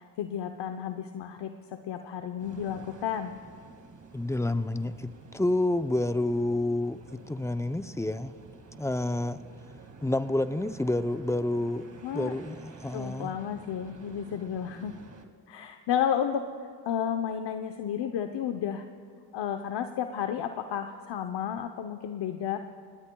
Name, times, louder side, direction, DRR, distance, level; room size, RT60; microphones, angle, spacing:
voice 1, 0.0-3.3 12.0-12.3 12.9-14.9 15.5-18.8 19.3-22.6, left 9 dB, 70° left, 6 dB, 0.9 m, -32 dB
sound 1, 2.4-15.3, right 4 dB, 40° right, 2.1 m, -50 dB
voice 2, 4.1-8.3 8.7-9.4 10.0-11.9 12.1-13.4, left 1 dB, 5° left, 11 dB, 0.6 m, -29 dB
28.5 x 19.0 x 2.3 m, 2.3 s
cardioid pair, 70°, 44 cm